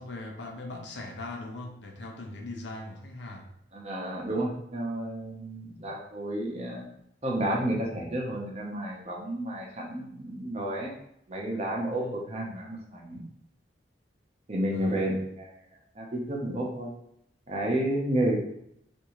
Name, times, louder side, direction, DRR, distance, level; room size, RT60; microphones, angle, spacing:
voice 1, 0.0-3.5 11.9-12.2 14.7-15.1, left 2 dB, 85° left, 2 dB, 0.7 m, -40 dB
voice 2, 3.7-6.9 7.2-10.9 11.3-13.2 14.5-15.5 16.0-16.9 17.5-18.4, right 1 dB, 35° right, -1 dB, 0.7 m, -31 dB
3.6 x 2.6 x 3.0 m, 0.74 s
head